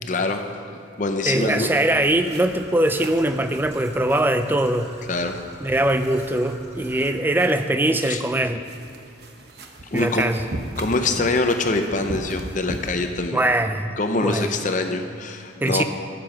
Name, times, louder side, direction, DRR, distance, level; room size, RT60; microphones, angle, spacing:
voice 1, 0.0-0.4 1.0-1.7 5.1-5.4 8.0-8.2 9.9-10.2 10.8-13.4 14.0-15.8, left 2 dB, 40° left, 6 dB, 0.7 m, -24 dB
voice 2, 1.3-4.9 5.6-8.6 9.9-10.5 13.3-13.9 14.2-14.5 15.6-15.8, right 1 dB, 10° right, 9 dB, 0.4 m, -22 dB
Traffic noise roadway noise / Trickle dribble, 1.4-7.1, equal, 30° right, 1.5 m, -43 dB
sound 1, 1.7-12.9, right 1 dB, 55° right, 0.9 m, -40 dB
13.5 x 7.6 x 5.2 m, 2.8 s
head